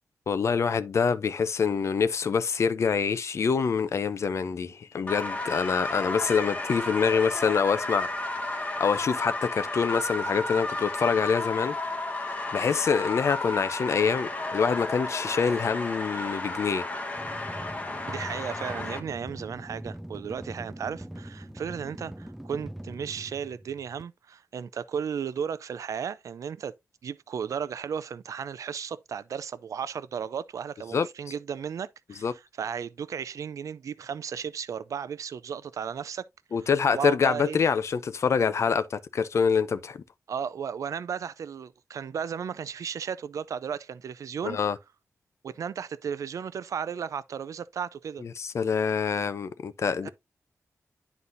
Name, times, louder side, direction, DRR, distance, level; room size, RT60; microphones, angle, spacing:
voice 1, 0.3-8.1 8.8-11.7 12.5-16.9 30.9-31.1 32.2-32.3 36.5-40.0 44.4-44.8 48.2-50.1, left 6 dB, 60° left, 0.5 m, -25 dB
sound 1, 5.1-19.0, left 2 dB, 25° left, 1.1 m, -33 dB
sound 2, 17.2-24.0, right 1 dB, 5° right, 0.4 m, -42 dB
voice 2, 18.1-26.7 27.0-36.2 36.9-37.6 40.3-44.6 45.4-48.2 50.0-50.1, right 7 dB, 80° right, 0.4 m, -34 dB
11.0 x 4.1 x 2.5 m
wide cardioid pair, 165°, 5 cm